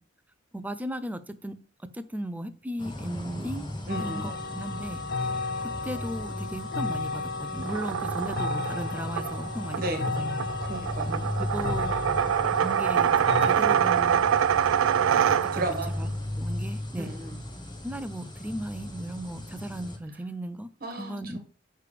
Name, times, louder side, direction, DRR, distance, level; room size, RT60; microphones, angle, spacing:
voice 1, 0.5-3.7 4.0-9.8 10.2-10.4 11.1-12.0 12.5-14.4 15.1-15.7 16.0-16.1 16.4-17.1 17.8-20.7 21.0-21.4, right 1 dB, 10° right, 11 dB, 0.4 m, -36 dB
sound 1, 2.8-20.0, left 1 dB, 25° left, 1.1 m, -37 dB
sound 2, 3.9-13.5, left 4 dB, 55° left, 0.5 m, -34 dB
voice 2, 3.9-4.3 9.8-10.2 10.6-11.3 15.5-15.9 17.0-17.4 20.8-21.2, right 2 dB, 45° right, 5 dB, 1.4 m, -34 dB
sound 3, 7.6-15.9, right 8 dB, 90° right, 0.3 m, -25 dB
6.6 x 3.3 x 4.9 m, 0.39 s
head